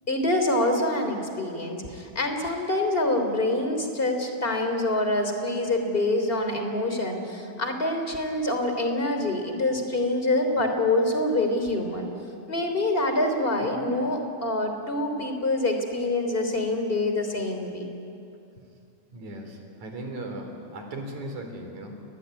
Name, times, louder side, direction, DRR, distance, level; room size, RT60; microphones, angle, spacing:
voice 1, 0.1-12.1 12.5-17.8, left 2 dB, 20° left, 5 dB, 3.3 m, -26 dB
voice 2, 19.1-21.9, right 1 dB, 75° right, 4 dB, 5.2 m, -37 dB
29.0 x 21.0 x 9.6 m, 2.6 s
omnidirectional pair, 3.4 m